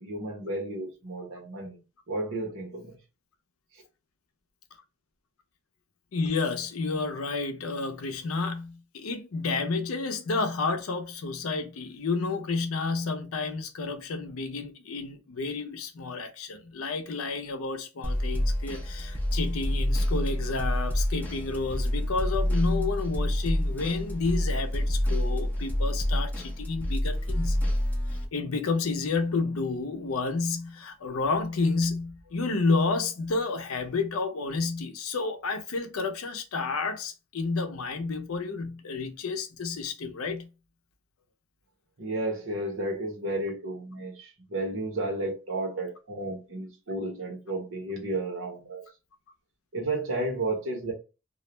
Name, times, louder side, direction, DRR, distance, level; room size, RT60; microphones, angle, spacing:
voice 1, 0.0-3.0 42.0-48.8 49.7-50.9, right 2 dB, 70° right, 1.0 m, -32 dB
voice 2, 6.1-27.6 28.3-40.5, left 3 dB, 85° left, 0.5 m, -30 dB
sound 1, 18.0-28.3, equal, 10° left, 0.4 m, -28 dB
2.4 x 2.1 x 3.0 m
head